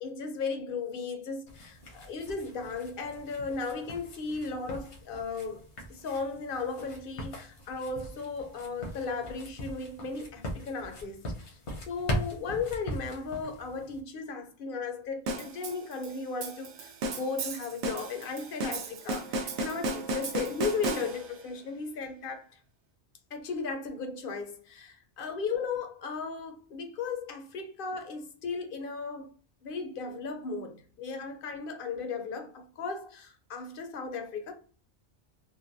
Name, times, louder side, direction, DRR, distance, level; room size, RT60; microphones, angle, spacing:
voice 1, 0.0-5.6 5.9-11.6 11.9-22.5 23.3-29.3 29.6-34.5, left 4 dB, 60° left, 0.7 m, -36 dB
sound 1, 1.5-14.0, equal, 80° left, 1.2 m, -40 dB
sound 2, 15.3-21.5, right 2 dB, 90° right, 0.9 m, -35 dB
3.1 x 2.1 x 2.6 m
omnidirectional pair, 1.1 m